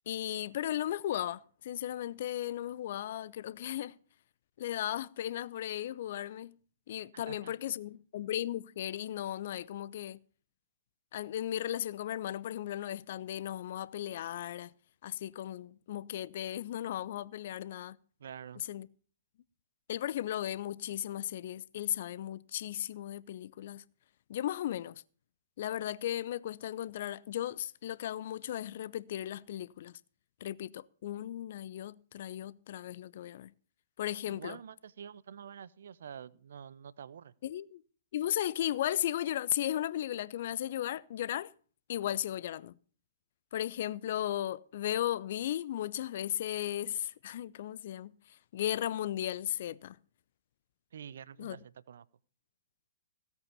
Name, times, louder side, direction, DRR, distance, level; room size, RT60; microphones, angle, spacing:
voice 1, 0.1-3.9 4.6-6.6 6.9-10.2 11.1-14.7 15.0-18.0 18.7-18.9 19.9-23.8 24.3-25.0 25.6-30.0 30.4-33.5 34.0-34.6 37.4-37.8 38.1-41.5 41.9-42.8 43.5-50.0 51.4-51.6, left 12 dB, 50° left, 0.6 m, -36 dB
voice 2, 7.1-7.5 18.2-18.6 34.2-37.3 50.9-52.1, right 8 dB, 60° right, 0.6 m, -47 dB
16.5 x 8.4 x 6.9 m
figure-of-eight pair, 115°, 0 cm